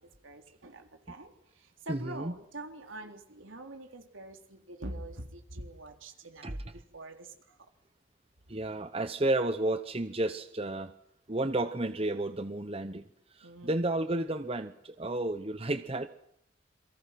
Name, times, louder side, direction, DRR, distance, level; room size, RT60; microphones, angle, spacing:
voice 1, 0.0-7.7 13.4-13.8, right 1 dB, 75° right, 5 dB, 3.4 m, -45 dB
voice 2, 1.9-2.4 6.4-6.6 8.5-10.9 11.3-13.0 13.3-16.1, right 2 dB, 30° right, 10 dB, 0.9 m, -32 dB
28.5 x 23.5 x 6.0 m, 0.78 s
head